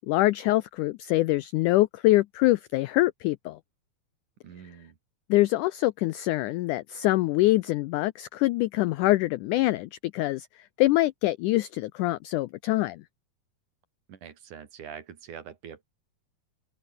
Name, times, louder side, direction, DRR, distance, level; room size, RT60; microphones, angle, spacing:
voice 1, 0.1-3.6 5.3-10.5 10.8-13.0, left 18 dB, 85° left, 1.8 m, -24 dB
voice 2, 4.4-5.0 14.1-15.8, right 8 dB, 60° right, 3.5 m, -44 dB
omnidirectional pair, 4.3 m